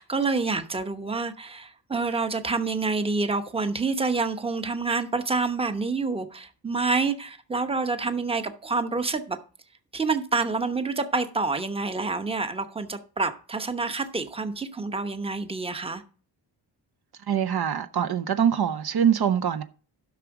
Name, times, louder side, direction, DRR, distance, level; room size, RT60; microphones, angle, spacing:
voice 1, 0.0-9.4 9.9-16.0, right 4 dB, 15° right, 0.9 m, -27 dB
voice 2, 17.3-19.6, right 8 dB, 60° right, 0.8 m, -23 dB
11.5 x 6.2 x 4.8 m
cardioid pair, 105°, 44 cm